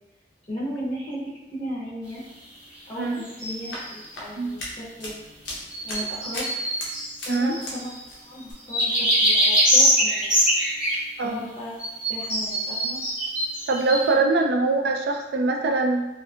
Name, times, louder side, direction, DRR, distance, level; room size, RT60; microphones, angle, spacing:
voice 1, 0.5-1.2 1.5-2.2 2.9-5.3 5.8-6.5 7.3-7.9 8.2-10.3 11.2-11.7 12.1-13.0, equal, 30° left, -7 dB, 0.6 m, -35 dB
sound 1, 3.3-4.0 5.7-7.9 8.7-11.0 11.8-14.1, equal, 5° right, 0.8 m, -23 dB
sound 2, 3.5-8.5, left 1 dB, 90° left, 0.7 m, -37 dB
voice 2, 13.7-16.1, right 3 dB, 60° right, 3 dB, 0.3 m, -23 dB
2.6 x 2.6 x 2.3 m, 0.98 s
head